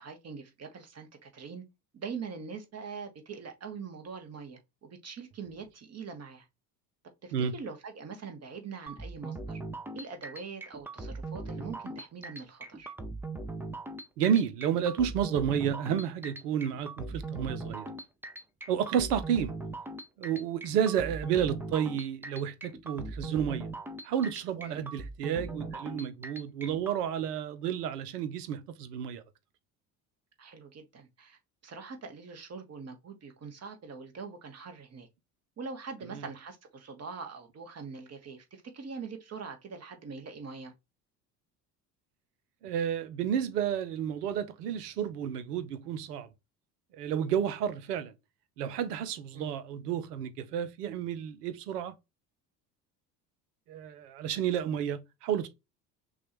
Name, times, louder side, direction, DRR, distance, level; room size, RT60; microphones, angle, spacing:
voice 1, 0.0-1.6 1.9-6.5 7.2-9.6 9.9-12.9 24.6-24.9 30.4-35.1 35.6-40.7 49.3-49.5, right 5 dB, 30° right, 1.3 m, -43 dB
sound 1, 8.9-27.0, right 3 dB, 5° right, 0.6 m, -40 dB
voice 2, 14.2-17.9 18.7-19.5 20.2-23.7 24.0-29.2 36.1-36.3 42.6-46.3 46.9-48.1 48.6-51.9 53.7-55.5, right 8 dB, 70° right, 0.8 m, -31 dB
6.0 x 2.4 x 3.0 m
figure-of-eight pair, 60°, 49 cm